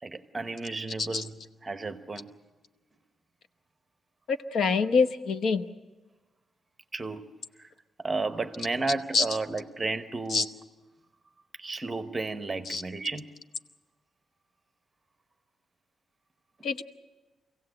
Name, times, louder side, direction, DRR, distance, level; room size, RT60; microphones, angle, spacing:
voice 1, 0.0-2.3 6.9-7.3 7.6-7.7 8.0-10.5 11.6-13.3 16.6-16.7, right 3 dB, 20° right, 1.0 m, -33 dB
voice 2, 4.3-5.7 9.1-9.2 10.3-10.4 12.7-12.8 16.6-16.8, left 4 dB, 60° left, 0.9 m, -25 dB
25.5 x 16.5 x 7.8 m
wide cardioid pair, 160°, 0 cm